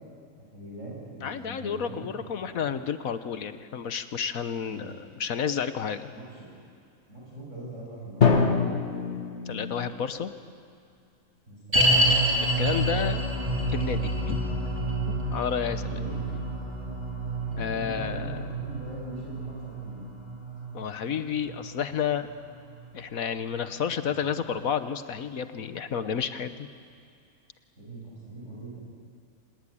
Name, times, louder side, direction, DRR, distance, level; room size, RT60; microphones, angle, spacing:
voice 1, 0.5-2.7 4.7-4.9 6.1-6.4 7.1-8.5 11.5-12.0 15.8-16.2 17.4-20.0 24.0-24.4 27.8-28.8, right 1 dB, 55° right, -4 dB, 7.6 m, -41 dB
voice 2, 1.2-6.1 9.5-10.3 12.4-13.2 13.7-14.4 15.1-16.0 17.6-18.5 20.7-22.3 22.9-26.6, left 7 dB, 70° left, 10 dB, 1.5 m, -31 dB
Drum, 8.2-10.1, left 5 dB, 50° left, 2.0 m, -24 dB
sound 1, 11.7-23.0 23.3-23.4 24.0-24.1, right 1 dB, 25° right, 3.9 m, -28 dB
25.5 x 19.5 x 10.0 m, 2.4 s
omnidirectional pair, 1.5 m